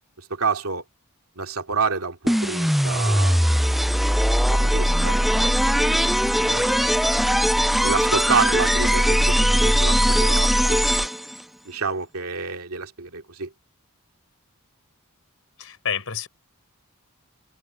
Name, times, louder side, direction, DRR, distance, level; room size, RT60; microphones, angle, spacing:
voice 1, 0.2-0.8 1.4-3.6 4.5-5.5 5.7-6.2 6.6-6.9 7.8-11.1 11.6-13.5, right 5 dB, 70° right, 2.8 m, -28 dB
sound 1, 2.3-11.4, equal, ahead, 0.5 m, -20 dB
voice 2, 6.4-6.9 15.6-16.3, left 7 dB, 70° left, 4.9 m, -31 dB
head